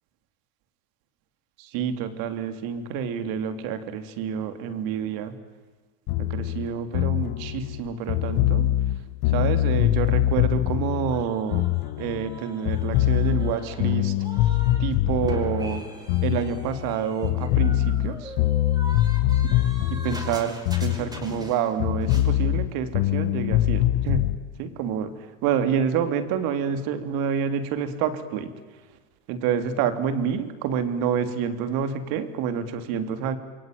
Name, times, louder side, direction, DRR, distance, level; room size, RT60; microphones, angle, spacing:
voice 1, 1.6-5.3 6.2-8.7 9.2-11.7 12.0-14.1 14.4-15.9 16.2-18.3 19.9-24.3 24.6-28.5 29.3-33.4, right 7 dB, 60° right, 9 dB, 3.4 m, -28 dB
sound 1, 6.1-12.4 12.7-17.0 17.2-21.5 21.8-24.4, left 14 dB, 55° left, 1.4 m, -23 dB
sound 2, 11.1-14.8 15.1-21.8 22.0-22.3, right 1 dB, 10° right, 5.4 m, -42 dB
28.0 x 23.0 x 9.4 m, 1.4 s
supercardioid pair, 115°, 41 cm